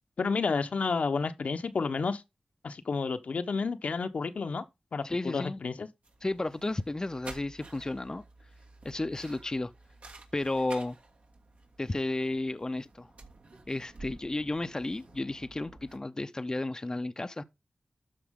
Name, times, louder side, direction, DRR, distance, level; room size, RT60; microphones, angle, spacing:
voice 1, 0.2-2.2 2.6-4.6 4.9-5.9, left 4 dB, 70° left, 1.0 m, -30 dB
voice 2, 5.0-5.6 6.2-8.2 8.8-9.7 10.3-11.0 11.8-13.1 13.7-17.4, left 2 dB, 30° left, 0.7 m, -33 dB
sound 1, 6.0-16.0, right 3 dB, 70° right, 2.6 m, -51 dB
12.5 x 4.7 x 3.7 m
cardioid pair, 50°, 2 cm